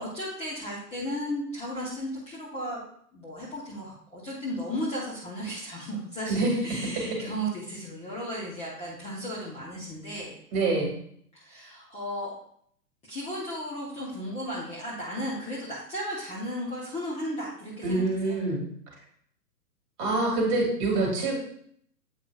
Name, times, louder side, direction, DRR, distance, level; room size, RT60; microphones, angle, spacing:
voice 1, 0.0-2.8 3.1-10.4 11.3-12.3 13.1-18.3, equal, 15° left, -6 dB, 1.0 m, -35 dB
voice 2, 10.5-10.9 17.8-18.6 20.0-21.4, right 2 dB, 25° right, -1 dB, 2.1 m, -25 dB
8.0 x 5.4 x 2.4 m, 0.64 s
figure-of-eight pair, 120°, 49 cm